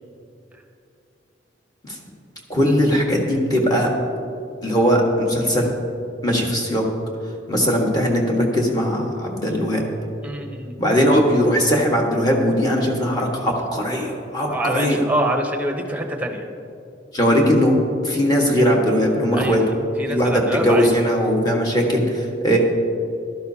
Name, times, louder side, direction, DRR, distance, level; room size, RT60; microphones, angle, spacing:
voice 1, 2.5-3.9 4.6-5.7 6.2-6.8 7.5-9.8 10.8-15.0 17.1-17.7 18.0-19.6 20.1-22.6, equal, 20° left, -1 dB, 1.4 m, -19 dB
voice 2, 10.2-10.7 14.5-16.5 19.3-19.6 20.0-20.9, right 1 dB, 10° right, 3 dB, 0.9 m, -25 dB
15.0 x 12.0 x 2.8 m, 2.6 s
head